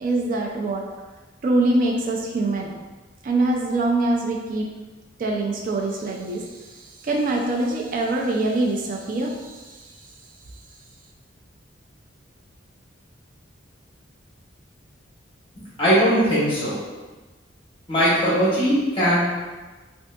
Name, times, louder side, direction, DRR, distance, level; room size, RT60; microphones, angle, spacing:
voice 1, 0.0-0.9 1.4-2.7 3.2-4.7 5.2-10.0, right 2 dB, 45° right, 0 dB, 0.3 m, -24 dB
voice 2, 15.8-16.8 17.9-19.4, equal, 30° left, -9 dB, 0.9 m, -20 dB
3.6 x 2.6 x 2.2 m, 1.2 s
head